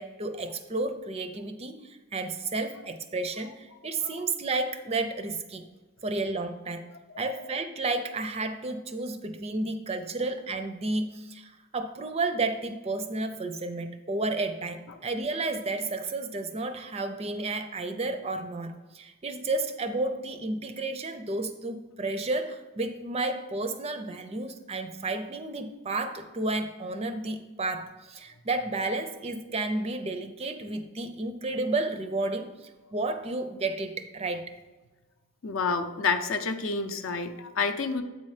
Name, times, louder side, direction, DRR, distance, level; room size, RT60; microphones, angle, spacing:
voice 1, 0.0-5.6 6.0-6.8 7.2-34.5, right 2 dB, 25° right, 8 dB, 0.4 m, -32 dB
voice 2, 35.4-38.0, left 4 dB, 60° left, 8 dB, 0.6 m, -29 dB
7.9 x 4.3 x 4.9 m, 1.2 s
head